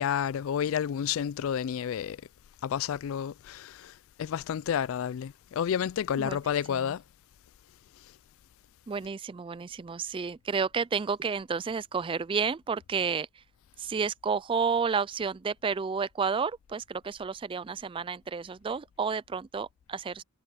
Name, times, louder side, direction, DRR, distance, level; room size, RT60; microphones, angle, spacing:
voice 1, 0.0-2.2 2.6-7.0, left 8 dB, 65° left, 0.3 m, -30 dB
voice 2, 6.1-6.9 8.9-13.3 13.8-20.2, right 5 dB, 25° right, 0.3 m, -31 dB
head